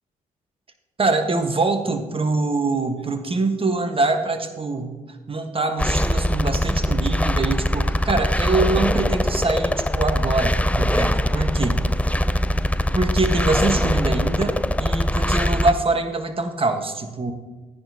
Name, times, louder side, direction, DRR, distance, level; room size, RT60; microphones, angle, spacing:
voice 1, 1.0-11.8 12.9-17.3, right 3 dB, 35° right, 7 dB, 1.3 m, -24 dB
sound 1, 5.8-15.7, equal, 10° left, 0.5 m, -22 dB
13.5 x 10.0 x 2.8 m, 1.3 s
hypercardioid pair, 45°, 17 cm